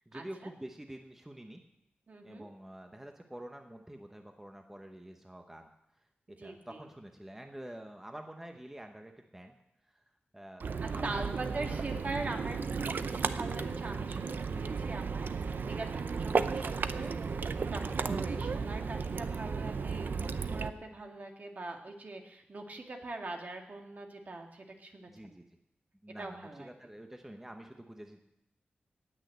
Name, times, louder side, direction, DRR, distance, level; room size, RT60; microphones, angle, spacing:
voice 1, 0.1-1.6 2.2-5.7 6.0-9.5 9.9-12.0 17.6-18.0 25.1-25.4 26.0-28.2, right 1 dB, 10° right, 4 dB, 1.0 m, -48 dB
voice 2, 2.1-2.5 6.4-6.9 10.8-15.9 16.2-17.1 17.7-25.4 26.2-26.7, right 2 dB, 50° right, 2 dB, 1.9 m, -42 dB
Ocean, 10.6-20.7, right 5 dB, 70° right, 0.6 m, -34 dB
18.0 x 6.4 x 8.0 m, 0.82 s
wide cardioid pair, 125°, 3 cm